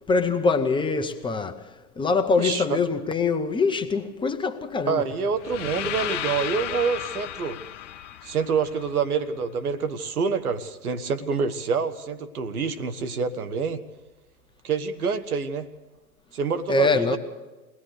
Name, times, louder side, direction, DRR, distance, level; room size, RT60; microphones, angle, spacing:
voice 1, 0.1-1.7 2.0-5.1 16.7-17.2, left 4 dB, 10° left, 1.0 m, -23 dB
voice 2, 2.4-2.8 4.9-7.6 8.2-13.8 14.6-15.7 16.3-17.2, right 5 dB, 75° right, 1.5 m, -27 dB
sound 1, 5.4-9.4, left 11 dB, 55° left, 0.9 m, -34 dB
22.0 x 18.5 x 6.6 m
hypercardioid pair, 110°, 44 cm